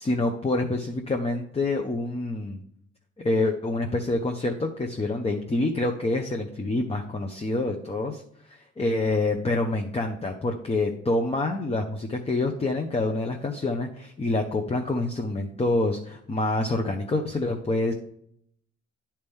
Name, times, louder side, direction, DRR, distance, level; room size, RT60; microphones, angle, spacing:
voice 1, 0.0-2.6 3.2-8.2 8.5-17.9, left 2 dB, 20° left, 3 dB, 0.7 m, -27 dB
9.5 x 4.4 x 3.5 m, 0.69 s
cardioid pair, 90°, 30 cm